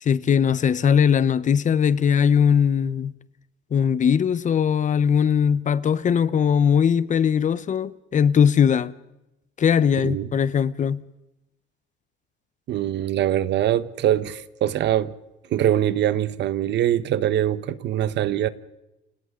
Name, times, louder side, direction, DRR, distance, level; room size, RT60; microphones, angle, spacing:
voice 1, 0.0-3.1 3.7-8.9 9.6-11.0, left 7 dB, 40° left, 0.9 m, -20 dB
voice 2, 10.0-10.3 12.7-15.1 15.5-18.5, right 11 dB, 65° right, 1.2 m, -23 dB
29.5 x 26.5 x 3.9 m
cardioid pair, 120°, 20 cm